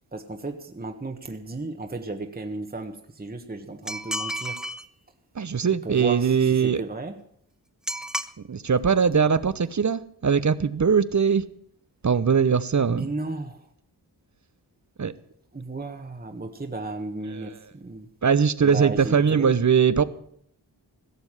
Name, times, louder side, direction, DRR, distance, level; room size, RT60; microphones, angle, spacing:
voice 1, 0.1-4.6 5.8-7.2 12.8-13.7 15.5-18.1 18.6-19.6, right 2 dB, 20° right, 5 dB, 1.3 m, -34 dB
sound 1, 3.9-4.9 7.9-8.3, equal, ahead, 0.7 m, -31 dB
voice 2, 5.3-6.8 8.5-11.4 12.0-13.1 15.0-15.1 17.4-17.5 18.2-20.0, right 6 dB, 45° right, 16 dB, 0.9 m, -21 dB
16.5 x 7.0 x 9.8 m, 0.68 s
wide cardioid pair, 75°, 42 cm